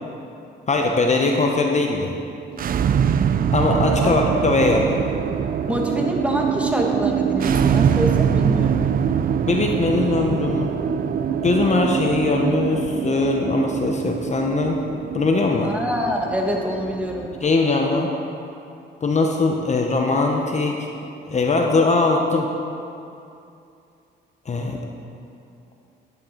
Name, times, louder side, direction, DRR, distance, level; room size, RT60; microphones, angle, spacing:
voice 1, 0.7-2.1 3.5-5.0 9.5-10.7 11.4-14.8 15.1-15.7 17.4-18.1 19.0-20.9 21.3-22.5 24.5-24.8, left 3 dB, 35° left, 2 dB, 0.9 m, -20 dB
sound 1, 2.5-17.5, right 8 dB, 45° right, 0.4 m, -23 dB
voice 2, 5.7-8.8 15.6-17.3, equal, 5° right, 0 dB, 1.5 m, -25 dB
10.5 x 9.5 x 4.4 m, 2.6 s
cardioid pair, 90°, 20 cm